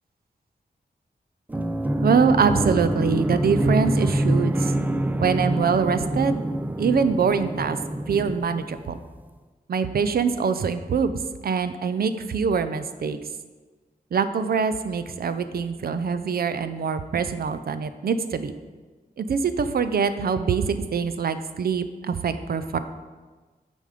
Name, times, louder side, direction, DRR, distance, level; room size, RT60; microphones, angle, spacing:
sound 1, 1.5-9.1, right 1 dB, 10° right, 0.3 m, -25 dB
voice 1, 2.0-4.7 5.2-6.4 6.8-7.8 8.1-8.9 9.7-13.2 14.1-18.5 19.2-22.8, right 6 dB, 70° right, 11 dB, 0.5 m, -24 dB
9.3 x 5.2 x 5.0 m, 1.3 s
wide cardioid pair, 145°, 16 cm